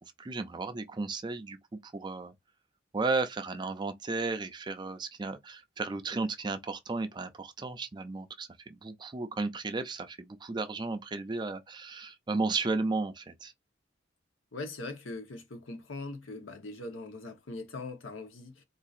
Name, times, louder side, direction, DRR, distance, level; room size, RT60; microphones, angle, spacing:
voice 1, 0.0-2.3 2.9-13.5, right 3 dB, 25° right, 0.4 m, -34 dB
voice 2, 14.5-18.6, left 2 dB, 85° left, 1.0 m, -41 dB
3.9 x 2.7 x 2.5 m
head